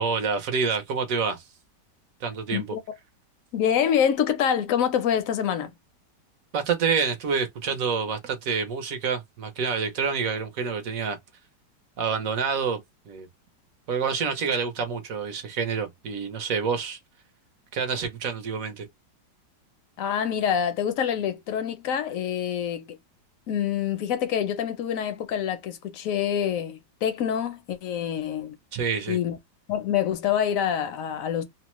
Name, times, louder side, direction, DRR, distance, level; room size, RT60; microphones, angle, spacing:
voice 1, 0.0-1.4 2.2-2.6 6.5-11.2 12.0-12.8 13.1-13.3 13.9-17.0 17.7-18.8 28.7-29.2, right 6 dB, 65° right, 0.9 m, -27 dB
voice 2, 3.5-5.7 20.0-23.0 23.5-28.6 29.1-29.4 29.7-31.4, left 9 dB, 65° left, 0.9 m, -26 dB
2.9 x 2.1 x 3.0 m
omnidirectional pair, 1.9 m